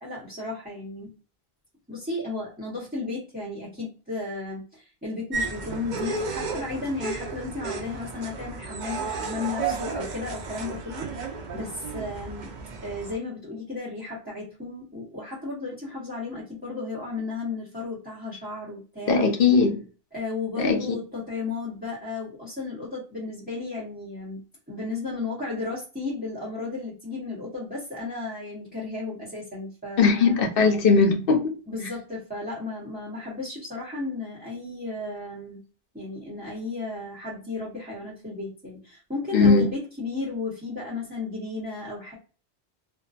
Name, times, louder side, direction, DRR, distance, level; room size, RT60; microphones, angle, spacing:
voice 1, 0.0-1.2 1.9-12.5 12.8-19.2 20.1-24.4 24.7-30.4 31.7-35.6 35.9-42.1, left 3 dB, 10° right, 0.9 m, -34 dB
sound 1, 5.3-13.2, right 4 dB, 55° right, 0.6 m, -33 dB
voice 2, 19.1-19.8 20.6-20.8 30.0-31.5 39.3-39.7, left 4 dB, 65° left, 0.8 m, -19 dB
2.5 x 2.2 x 2.3 m
omnidirectional pair, 1.1 m